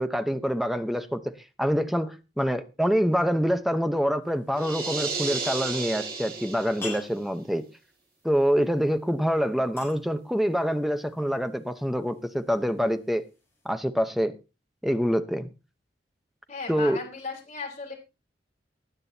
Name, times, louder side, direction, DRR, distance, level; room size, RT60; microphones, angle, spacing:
voice 1, 0.0-1.3 1.6-7.7 8.2-13.3 13.6-14.4 14.8-15.5 16.7-17.0, equal, ahead, 0.8 m, -26 dB
sound 1, 4.2-13.7, left 4 dB, 15° left, 6.9 m, -49 dB
sound 2, 4.6-7.1, right 4 dB, 55° right, 3.3 m, -33 dB
voice 2, 16.5-17.9, left 4 dB, 40° left, 3.7 m, -36 dB
19.0 x 9.8 x 2.8 m
head